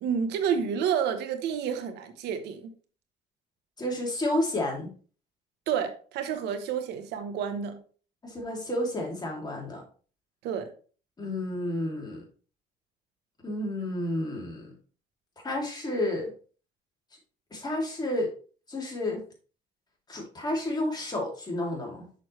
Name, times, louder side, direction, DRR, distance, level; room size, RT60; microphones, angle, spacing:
voice 1, 0.0-2.7 5.7-7.8 10.4-10.7, right 7 dB, 85° right, 7 dB, 1.1 m, -29 dB
voice 2, 3.8-4.9 8.2-9.8 11.2-12.3 13.4-14.7 15.4-16.3 17.5-18.3 18.7-19.2 20.1-22.1, left 1 dB, 25° left, 0 dB, 2.6 m, -31 dB
6.3 x 6.2 x 3.1 m, 0.39 s
cardioid pair, 110°, 17 cm